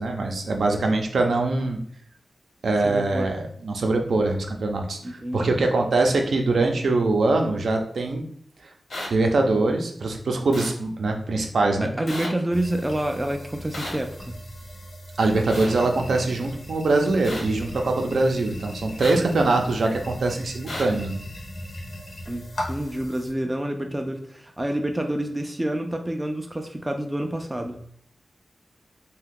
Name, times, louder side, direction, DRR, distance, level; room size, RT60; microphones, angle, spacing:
voice 1, 0.0-1.8 2.6-8.2 8.6-8.7 9.1-11.9 15.2-21.2, right 2 dB, 80° right, 3 dB, 0.5 m, -23 dB
voice 2, 2.8-3.3 5.0-5.5 11.8-14.4 22.3-27.8, right 1 dB, 15° right, 4 dB, 0.3 m, -28 dB
sound 1, 8.9-9.1 10.5-10.7 12.1-12.3 13.7-14.0 15.5-15.7 17.2-17.4 19.0-19.2 20.7-20.8, left 1 dB, 70° left, 1.0 m, -33 dB
sound 2, 12.5-23.3, equal, 45° left, 0.6 m, -38 dB
2.6 x 2.2 x 3.6 m, 0.63 s
wide cardioid pair, 150°, 0 cm